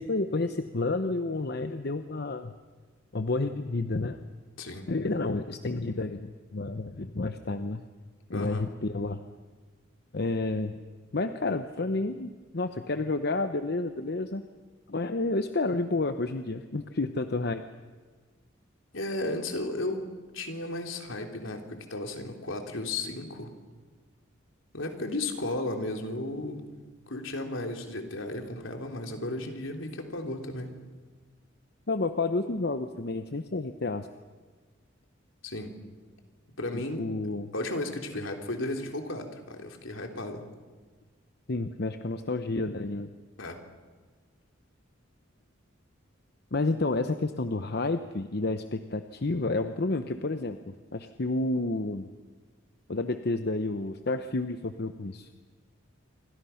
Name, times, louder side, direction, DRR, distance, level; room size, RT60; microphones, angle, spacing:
voice 1, 0.0-2.5 3.1-4.2 4.9-7.8 8.3-9.2 10.1-10.8 11.1-14.4 14.9-17.6 31.9-34.1 36.7-37.5 41.5-43.1 46.5-50.6 50.9-52.1 52.9-55.3, left 2 dB, 50° left, 8 dB, 0.9 m, -30 dB
voice 2, 8.3-8.7 18.9-20.1 20.3-23.5 24.7-26.6 27.1-30.7 35.4-35.8 36.6-37.1 37.5-40.4 43.4-43.6, left 2 dB, 75° left, 3 dB, 3.3 m, -34 dB
28.0 x 25.0 x 5.8 m, 1.5 s
head